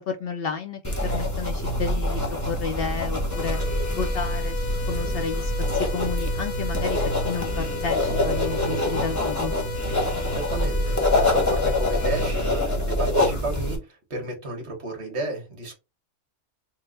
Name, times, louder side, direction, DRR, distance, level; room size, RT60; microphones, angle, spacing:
voice 1, 0.1-7.0 7.2-9.5, left 5 dB, 60° left, 0.6 m, -32 dB
sound 1, 0.8-13.8, left 1 dB, 15° left, 0.9 m, -25 dB
sound 2, 3.3-12.3, left 4 dB, 80° left, 1.1 m, -35 dB
voice 2, 10.3-15.7, right 2 dB, 60° right, 1.6 m, -33 dB
3.9 x 2.1 x 3.7 m
omnidirectional pair, 1.3 m